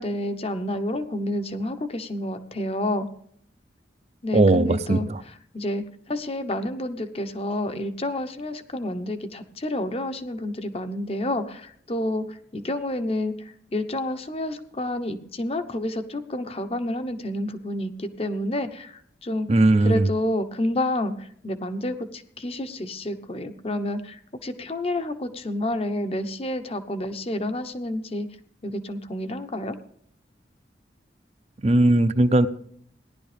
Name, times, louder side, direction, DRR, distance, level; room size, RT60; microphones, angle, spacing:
voice 1, 0.0-3.1 4.2-28.3 28.6-29.8, left 1 dB, 35° left, 10 dB, 1.0 m, -29 dB
voice 2, 4.3-5.2 19.5-20.1 31.6-32.5, right 2 dB, 35° right, 12 dB, 0.7 m, -18 dB
17.5 x 11.5 x 3.4 m, 0.65 s
head